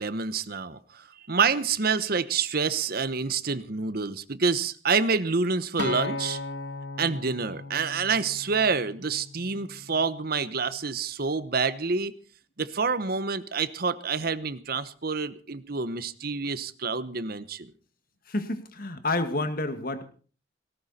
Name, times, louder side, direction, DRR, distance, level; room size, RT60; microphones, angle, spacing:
voice 1, 0.0-6.4 7.0-12.1 12.6-17.7, right 5 dB, 55° right, 15 dB, 1.0 m, -27 dB
Acoustic guitar, 5.8-10.1 10.9-11.0, left 2 dB, 80° left, 2.5 m, -37 dB
voice 2, 18.3-20.0, left 2 dB, 50° left, 9 dB, 2.1 m, -29 dB
19.0 x 17.5 x 4.3 m, 0.40 s
head